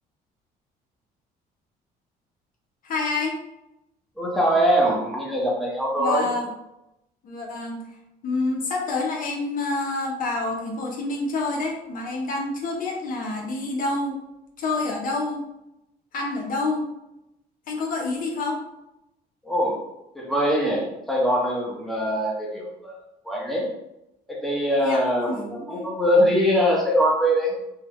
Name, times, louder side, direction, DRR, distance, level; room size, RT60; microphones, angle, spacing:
voice 1, 2.8-3.4 6.0-6.5 7.2-7.8 8.2-14.2 14.6-15.4 16.1-16.9 17.7-18.6 24.8-25.0 25.3-25.4 25.7-25.9, left 3 dB, 55° left, 0 dB, 0.7 m, -27 dB
voice 2, 4.2-6.3 19.4-19.8 20.1-23.0 23.2-23.7 24.3-27.5, equal, ahead, -3 dB, 0.9 m, -22 dB
3.7 x 2.2 x 3.0 m, 0.89 s
cardioid pair, 110°, 17 cm